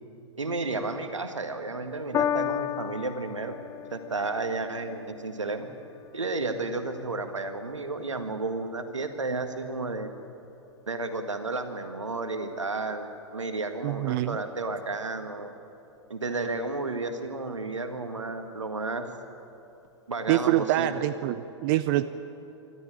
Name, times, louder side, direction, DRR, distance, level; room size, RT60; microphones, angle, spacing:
voice 1, 0.4-3.6 3.9-5.7 6.1-10.1 10.9-15.5 16.1-19.1 20.1-21.1, right 3 dB, 85° right, 7 dB, 1.9 m, -32 dB
Piano, 2.1-8.7 9.5-9.6, left 10 dB, 20° left, 0.5 m, -35 dB
voice 2, 13.8-14.4 20.3-22.0, right 14 dB, 45° right, 13 dB, 0.7 m, -25 dB
25.0 x 13.5 x 9.1 m, 2.9 s
figure-of-eight pair, 105°, 15 cm